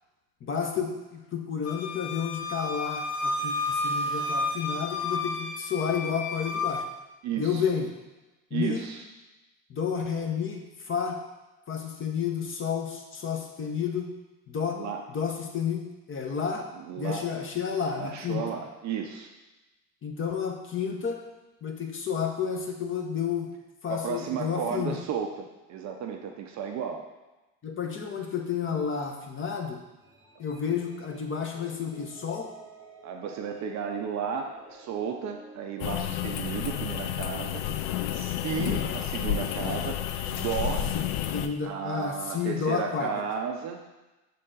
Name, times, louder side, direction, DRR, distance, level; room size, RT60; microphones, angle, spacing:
voice 1, 0.4-6.8 7.4-7.9 8.5-8.9 9.7-11.2 11.7-14.1 14.5-14.8 15.1-15.8 16.1-16.7 17.0-18.4 20.0-21.2 21.6-23.5 23.8-25.0 27.6-29.8 30.4-32.5 38.5-39.0 41.3-43.1, left 6 dB, 25° left, 2 dB, 0.9 m, -31 dB
Wind instrument woodwind instrument, 1.7-6.9, left 2 dB, 70° left, 0.9 m, -31 dB
voice 2, 7.2-7.6 8.5-9.0 14.7-15.0 16.7-17.3 18.0-19.3 23.9-27.1 33.0-37.6 38.1-40.0 40.3-40.9 41.6-43.8, right 7 dB, 35° right, 4 dB, 0.6 m, -33 dB
sound 1, 30.0-36.1, right 3 dB, 5° right, 1.3 m, -51 dB
sound 2, 35.8-41.5, left 10 dB, 45° left, 0.5 m, -30 dB
6.6 x 3.8 x 3.8 m, 1.1 s
hypercardioid pair, 75°, 49 cm